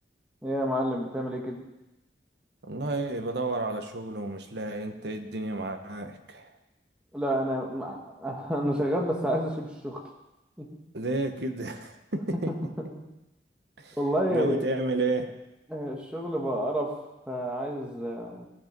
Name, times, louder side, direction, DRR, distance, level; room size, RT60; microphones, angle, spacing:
voice 1, 0.4-1.6 7.1-10.0 10.6-10.7 12.3-12.5 14.0-14.6 15.7-16.9 17.3-18.5, equal, 5° right, -1 dB, 1.8 m, -29 dB
voice 2, 2.6-6.5 10.9-12.5 13.8-14.0 14.3-15.3, right 2 dB, 65° right, 6 dB, 1.1 m, -31 dB
14.5 x 7.8 x 5.3 m, 0.96 s
head